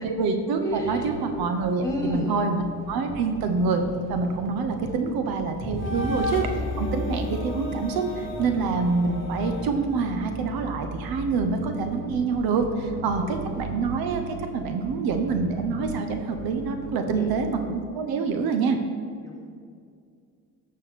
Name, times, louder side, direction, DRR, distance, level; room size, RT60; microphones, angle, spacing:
voice 1, 0.0-3.8 4.1-18.8, right 4 dB, 75° right, 6 dB, 1.0 m, -26 dB
voice 2, 0.6-1.2 1.8-2.4 4.9-5.1 5.8-6.1 13.0-13.5 17.1-17.3 19.2-19.5, left 1 dB, 10° left, -3 dB, 2.0 m, -32 dB
sound 1, 0.7-17.5, right 2 dB, 25° right, 1.7 m, -40 dB
sound 2, 3.8-9.7, left 2 dB, 30° left, 2.0 m, -33 dB
11.5 x 6.4 x 4.2 m, 2.2 s
cardioid pair, 105°, 37 cm